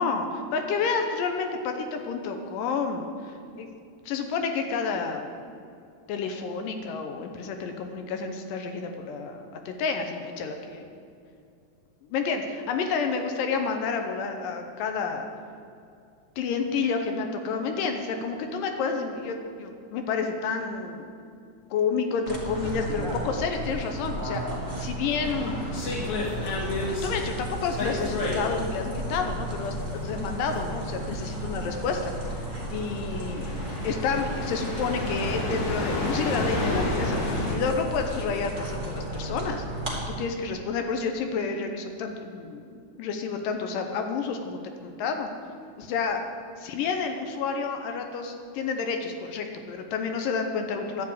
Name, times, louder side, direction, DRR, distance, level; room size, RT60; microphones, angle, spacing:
voice 1, 0.0-3.7 4.1-5.3 6.1-10.9 12.0-15.3 16.4-21.1 21.7-25.6 26.9-29.8 30.0-39.6 40.1-45.3 45.8-46.2 46.6-51.1, left 5 dB, 85° left, 5 dB, 2.4 m, -30 dB
sound 1, 22.2-40.0, right 1 dB, 20° right, 1.5 m, -34 dB
sound 2, 25.2-37.6, left 2 dB, 60° left, 3.0 m, -32 dB
11.0 x 4.9 x 8.3 m, 2.4 s
omnidirectional pair, 3.8 m